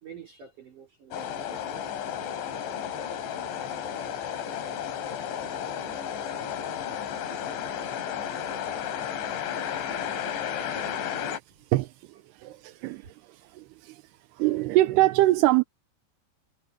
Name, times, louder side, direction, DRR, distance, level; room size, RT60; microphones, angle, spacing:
voice 1, 0.0-1.5 3.5-3.8 4.3-4.4 13.0-13.1 13.4-13.5, right 7 dB, 45° right, 4.5 m, -48 dB
sound 1, 1.1-11.4, left 9 dB, 85° left, 5.0 m, -33 dB
voice 2, 11.7-14.0 14.3-15.6, right 17 dB, 80° right, 2.5 m, -24 dB
omnidirectional pair, 5.2 m